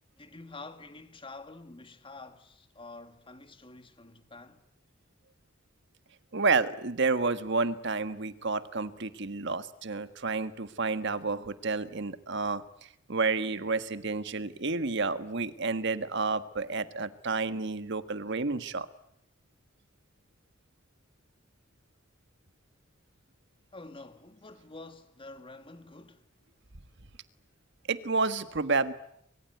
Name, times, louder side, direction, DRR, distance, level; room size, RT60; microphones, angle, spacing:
voice 1, 0.1-4.6 23.7-26.3, left 3 dB, 25° left, 2.0 m, -48 dB
voice 2, 6.3-18.9 27.9-28.9, right 4 dB, 60° right, 1.5 m, -30 dB
25.0 x 22.5 x 9.3 m
head